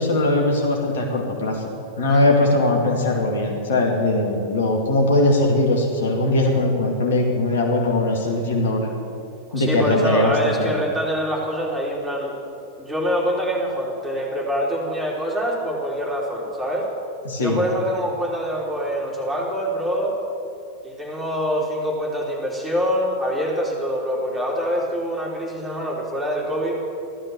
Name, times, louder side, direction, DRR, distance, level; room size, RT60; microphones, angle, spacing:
voice 1, 0.0-1.7 2.0-8.9 9.5-10.7 17.3-17.6, left 2 dB, 60° left, 1 dB, 2.4 m, -20 dB
voice 2, 9.5-12.3 12.8-16.9 17.4-20.1 20.8-26.8, equal, 5° right, -4 dB, 4.1 m, -25 dB
15.0 x 13.0 x 7.1 m, 2.7 s
figure-of-eight pair, 90°, 0 cm